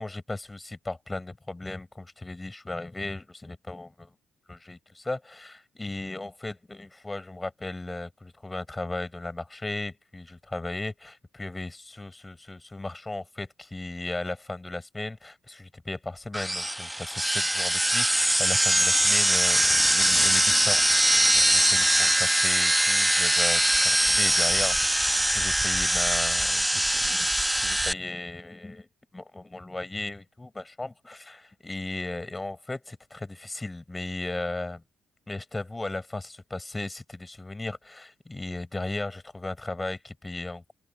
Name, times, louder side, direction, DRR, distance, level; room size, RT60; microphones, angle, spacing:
voice 1, 0.0-4.1 4.5-20.8 21.3-28.9 29.1-34.8 35.3-40.7, left 2 dB, 15° left, 7.4 m, -36 dB
sound 1, 16.3-27.9, right 1 dB, 5° right, 1.2 m, -22 dB
open air
cardioid pair, 90°, 0 cm